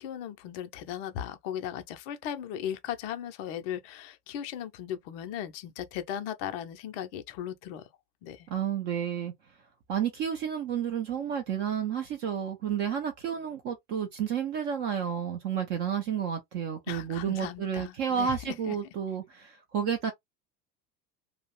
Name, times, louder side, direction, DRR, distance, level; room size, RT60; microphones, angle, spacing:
voice 1, 0.0-7.9 8.2-8.5 16.9-18.8, left 10 dB, 40° left, 0.5 m, -37 dB
voice 2, 8.5-9.3 9.9-20.1, right 8 dB, 25° right, 0.3 m, -31 dB
2.5 x 2.0 x 2.8 m
figure-of-eight pair, 75°, 49 cm